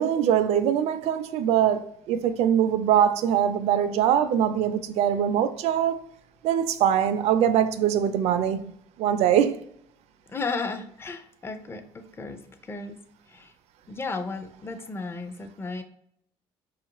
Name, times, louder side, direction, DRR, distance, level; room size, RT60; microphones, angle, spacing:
voice 1, 0.0-6.0 6.4-8.6 9.0-9.5, right 9 dB, 70° right, 0.4 m, -22 dB
voice 2, 10.3-13.0 13.3-13.5 13.9-15.8, left 4 dB, 20° left, 0.5 m, -34 dB
4.9 x 2.4 x 2.9 m
supercardioid pair, 95°, 12 cm